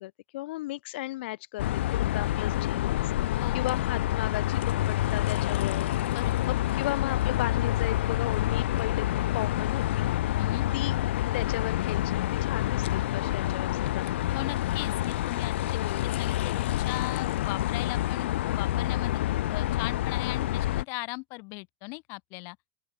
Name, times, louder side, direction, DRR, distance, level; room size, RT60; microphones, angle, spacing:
voice 1, 0.0-5.9 6.5-10.1 10.7-10.9 11.3-14.1 15.7-16.1, left 18 dB, 70° left, 5.0 m, -36 dB
sound 1, 1.6-20.8, left 14 dB, 85° left, 0.7 m, -28 dB
voice 2, 3.4-3.9 6.1-6.5 10.4-10.7 14.3-19.1 19.5-22.6, left 31 dB, 45° left, 4.1 m, -38 dB
open air
supercardioid pair, 155°, 6 cm